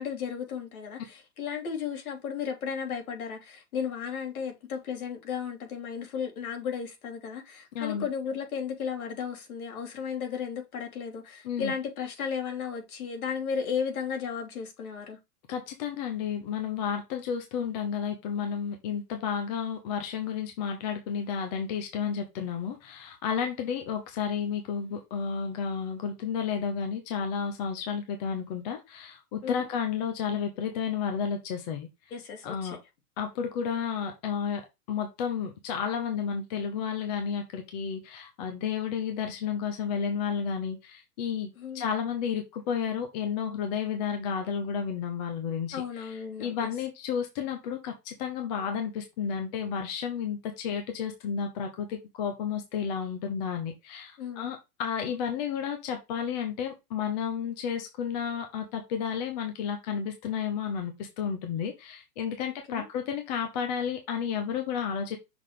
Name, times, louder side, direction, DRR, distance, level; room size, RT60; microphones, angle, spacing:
voice 1, 0.0-15.2 29.4-29.6 32.1-32.8 41.6-41.8 45.7-46.7 54.2-54.5 62.7-62.9, left 7 dB, 70° left, 2.7 m, -34 dB
voice 2, 15.5-31.9 32.4-32.8 33.2-34.6 34.9-41.5 41.7-65.2, left 7 dB, 30° left, 0.8 m, -32 dB
6.1 x 3.5 x 4.9 m
hypercardioid pair, 165°, 45 cm